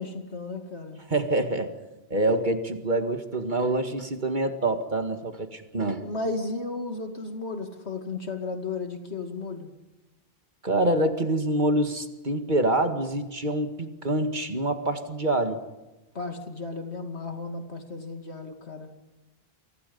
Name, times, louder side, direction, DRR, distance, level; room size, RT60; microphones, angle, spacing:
voice 1, 0.0-1.0 6.0-9.7 16.1-18.9, left 3 dB, 85° left, 5 dB, 2.8 m, -34 dB
voice 2, 1.1-1.7 2.1-6.0 10.6-15.6, right 1 dB, 45° right, 7 dB, 2.1 m, -26 dB
28.5 x 23.5 x 5.5 m, 1.1 s
omnidirectional pair, 1.1 m